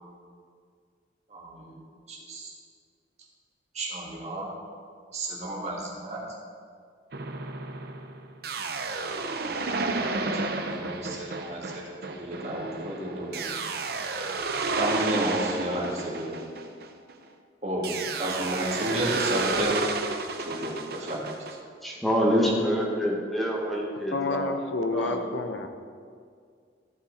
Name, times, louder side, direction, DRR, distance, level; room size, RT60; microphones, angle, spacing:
voice 1, 1.3-1.8 2.1-2.5 3.7-4.5 5.1-6.2 9.0-9.5 10.2-13.6 14.8-16.3 17.6-17.8 18.2-19.7 20.4-21.3, right 1 dB, 40° right, -3 dB, 1.8 m, -32 dB
sound 1, 7.1-17.2 17.8-21.5, right 3 dB, 55° right, 0.6 m, -31 dB
voice 2, 21.8-24.5 24.9-25.2, equal, ahead, -3 dB, 1.3 m, -26 dB
voice 3, 24.1-25.7, left 3 dB, 85° left, 7 dB, 0.7 m, -29 dB
14.0 x 5.6 x 3.9 m, 2.1 s
head